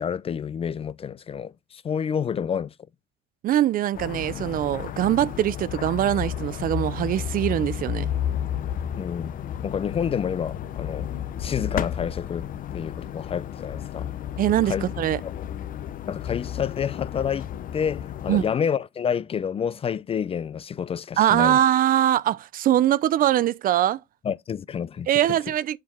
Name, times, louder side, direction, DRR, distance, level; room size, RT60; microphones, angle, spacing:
voice 1, 0.0-2.7 9.0-9.3 9.6-11.1 11.4-12.5 12.7-14.1 14.6-14.8 15.2-15.3 16.1-21.6 24.2-25.1, left 7 dB, 35° left, 0.5 m, -29 dB
voice 2, 3.4-8.1 14.4-15.2 18.3-18.5 21.2-24.0 25.1-25.8, right 12 dB, 55° right, 0.6 m, -22 dB
sound 1, 3.9-18.5, left 10 dB, 55° left, 0.8 m, -32 dB
7.4 x 4.5 x 3.5 m
cardioid pair, 110°, 17 cm